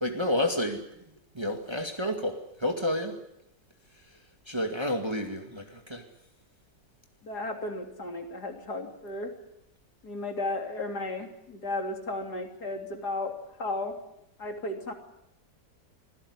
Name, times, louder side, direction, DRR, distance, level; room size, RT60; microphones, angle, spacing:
voice 1, 0.0-0.9 1.3-3.2 4.5-6.1, left 1 dB, 15° right, 2.1 m, -30 dB
voice 2, 7.2-9.3 10.0-13.3 13.6-14.0 14.4-14.9, left 2 dB, 60° left, 3.6 m, -34 dB
25.0 x 16.5 x 9.7 m
omnidirectional pair, 1.9 m